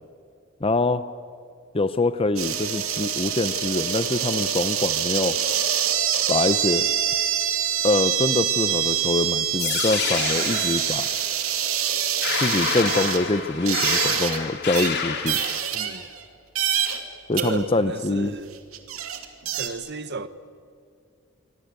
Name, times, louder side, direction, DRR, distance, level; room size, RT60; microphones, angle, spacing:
voice 1, 0.6-1.0 1.7-5.4 6.3-6.9 7.8-11.1 12.4-15.4 17.3-18.3, left 2 dB, 25° left, 0.7 m, -24 dB
sound 1, 2.4-14.4 14.7-14.9 15.3-16.2 16.6-17.0 17.4-17.5 18.4-18.5 18.7-19.7, right 9 dB, 85° right, 2.6 m, -25 dB
sound 2, 9.6-15.6, left 6 dB, 55° left, 2.9 m, -28 dB
voice 2, 15.7-16.1 17.4-18.6 19.5-20.3, right 4 dB, 55° right, 1.2 m, -33 dB
26.5 x 25.5 x 8.3 m
head